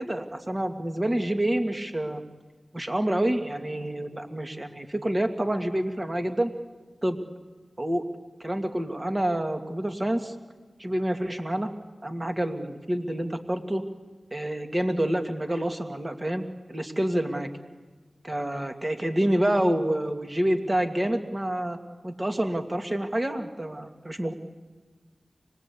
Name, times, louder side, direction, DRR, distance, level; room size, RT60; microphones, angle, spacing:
voice 1, 0.0-2.2 2.7-6.5 7.0-7.2 7.8-8.0 8.4-10.3 10.8-11.7 12.0-13.8 14.3-16.4 16.7-17.5 18.2-21.8 22.0-24.3, right 1 dB, 30° right, 5 dB, 2.2 m, -27 dB
25.0 x 20.0 x 8.4 m, 1.3 s
wide cardioid pair, 55°, 0 cm